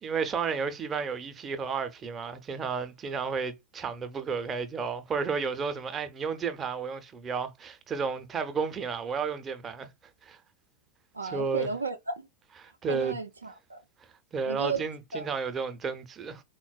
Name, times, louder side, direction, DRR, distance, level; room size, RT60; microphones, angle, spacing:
voice 1, 0.0-9.9 10.2-10.4 11.3-11.7 12.6-13.1 14.3-16.4, right 5 dB, 20° right, 0.5 m, -32 dB
voice 2, 11.1-12.3 12.7-13.8 14.5-14.8 15.1-15.3, right 4 dB, 80° right, 0.3 m, -34 dB
3.9 x 2.1 x 2.3 m
figure-of-eight pair, 90°, 0 cm